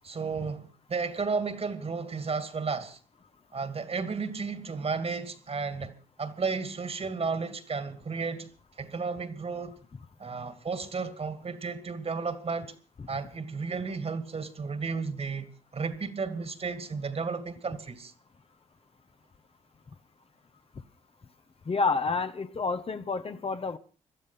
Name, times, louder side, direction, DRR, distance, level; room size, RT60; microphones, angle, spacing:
voice 1, 0.0-3.0 3.5-8.5 8.8-9.8 10.2-12.7 13.1-15.5 15.7-18.1, right 4 dB, 45° right, 2.4 m, -33 dB
voice 2, 21.6-23.8, left 4 dB, 40° left, 1.4 m, -29 dB
17.5 x 12.5 x 5.7 m
hypercardioid pair, 45°, 14 cm